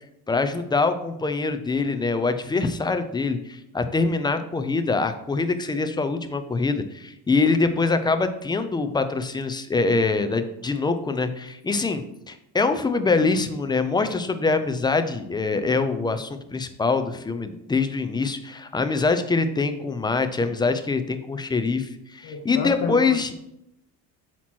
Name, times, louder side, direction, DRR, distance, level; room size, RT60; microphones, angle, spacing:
voice 1, 0.3-23.3, left 4 dB, 10° left, 9 dB, 0.3 m, -24 dB
voice 2, 22.2-23.0, left 6 dB, 55° left, 1 dB, 0.9 m, -29 dB
8.3 x 3.0 x 6.0 m, 0.82 s
cardioid pair, 120°, 45 cm